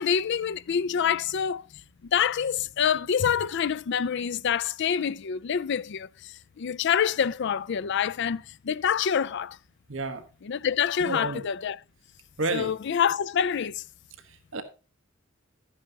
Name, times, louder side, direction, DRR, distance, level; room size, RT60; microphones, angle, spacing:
voice 1, 0.0-1.6 2.0-9.6 10.4-11.8 12.5-13.8, left 7 dB, 60° left, 0.4 m, -26 dB
voice 2, 9.9-10.2 11.0-11.4 12.4-12.7 14.3-14.6, right 3 dB, 70° right, 1.4 m, -31 dB
12.0 x 9.6 x 2.8 m
head